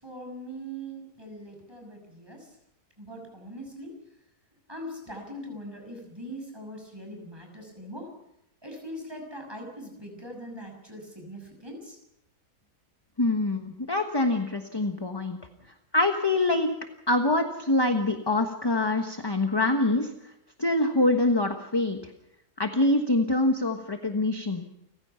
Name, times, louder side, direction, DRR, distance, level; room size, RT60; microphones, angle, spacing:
voice 1, 0.0-2.5 3.0-4.0 4.7-8.1 8.6-12.0, equal, 15° right, 2 dB, 6.3 m, -41 dB
voice 2, 13.2-15.4 15.9-16.7 17.1-20.1 20.6-22.0 22.6-24.7, left 2 dB, 15° left, 5 dB, 1.2 m, -25 dB
29.5 x 15.5 x 5.7 m, 0.81 s
omnidirectional pair, 1.6 m